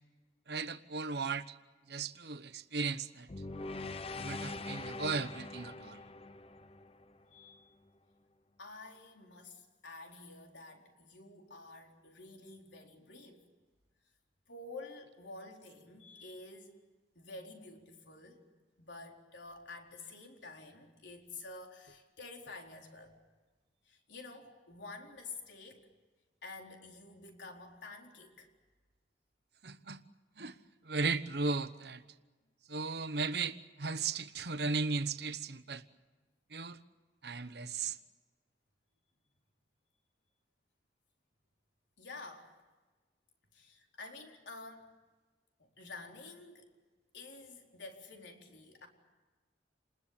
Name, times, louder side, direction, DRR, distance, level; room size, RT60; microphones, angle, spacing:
voice 1, 0.5-1.6 1.9-3.3 4.1-6.0 29.6-30.0 30.4-30.6 30.8-32.0 32.7-35.8 36.5-36.8 37.2-38.0, right 4 dB, 65° right, 1.1 m, -36 dB
sound 1, 3.3-7.5, left 3 dB, 30° left, 0.8 m, -43 dB
voice 2, 7.3-7.7 8.6-13.5 14.5-16.8 17.1-18.4 18.8-23.2 23.8-25.9 26.4-28.5 42.0-42.6 43.5-44.9 45.6-46.7 47.1-48.9, left 3 dB, 85° left, 4.2 m, -50 dB
28.5 x 20.5 x 8.7 m
head